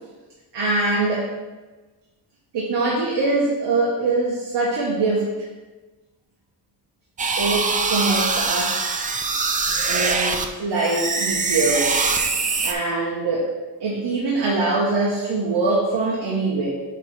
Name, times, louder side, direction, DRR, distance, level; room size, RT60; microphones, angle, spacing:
voice 1, 0.5-1.3 2.5-5.3 7.4-9.1 9.9-11.9 12.6-13.5 13.8-16.7, right 3 dB, 65° right, -4 dB, 1.3 m, -23 dB
sound 1, 7.2-10.5 10.8-12.7, right 4 dB, 20° right, 0.3 m, -23 dB
9.3 x 3.2 x 4.4 m, 1.2 s
cardioid pair, 140°, 44 cm